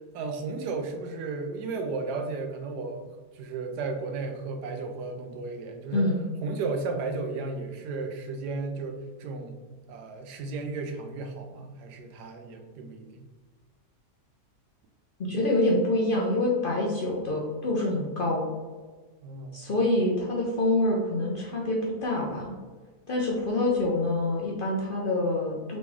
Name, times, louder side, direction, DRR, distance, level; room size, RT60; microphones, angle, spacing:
voice 1, 0.1-6.1 6.4-9.6 9.9-13.3 19.2-19.7, right 3 dB, 80° right, 5 dB, 1.2 m, -34 dB
voice 2, 15.2-18.5 19.5-22.5 23.1-25.8, left 1 dB, 75° left, -3 dB, 0.4 m, -26 dB
3.9 x 3.1 x 3.5 m, 1.3 s
omnidirectional pair, 1.8 m